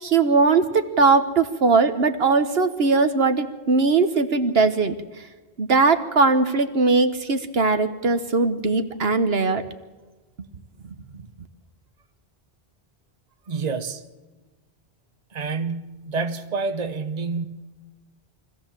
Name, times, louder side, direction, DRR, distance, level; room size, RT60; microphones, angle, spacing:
voice 1, 0.0-4.9 5.6-9.6, right 4 dB, 75° right, 9 dB, 1.4 m, -20 dB
voice 2, 13.5-14.0 15.3-17.5, right 4 dB, 40° right, 8 dB, 1.2 m, -28 dB
24.5 x 16.0 x 7.5 m, 1.2 s
omnidirectional pair, 1.0 m